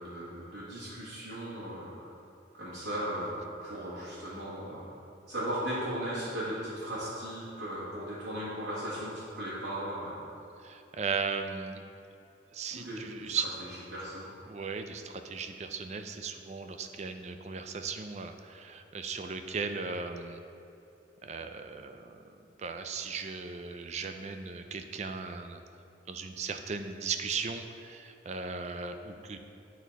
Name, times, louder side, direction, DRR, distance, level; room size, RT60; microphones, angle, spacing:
voice 1, 0.0-2.1 2.5-4.9 5.3-10.2 12.7-14.3, equal, 75° right, -11 dB, 1.8 m, -37 dB
voice 2, 10.6-11.8 12.5-13.5 14.5-20.4 21.2-25.6 26.1-29.4, right 5 dB, 40° right, 7 dB, 0.4 m, -37 dB
10.5 x 4.3 x 4.0 m, 2.7 s
head